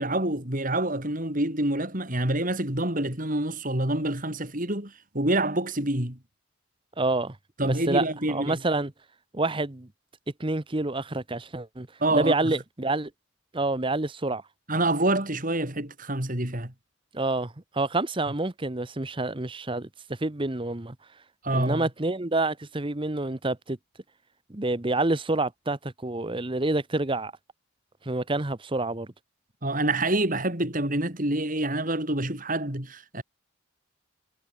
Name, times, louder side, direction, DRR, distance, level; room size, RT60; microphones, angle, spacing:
voice 1, 0.0-6.2 7.6-8.6 12.0-12.5 14.7-16.7 21.4-21.8 29.6-33.2, right 1 dB, 40° right, 4.4 m, -27 dB
voice 2, 7.0-7.4 7.6-8.9 9.3-9.9 10.4-13.1 13.5-14.4 17.1-21.0 21.5-23.8 24.5-27.3 28.0-29.1, right 2 dB, 25° right, 1.0 m, -28 dB
head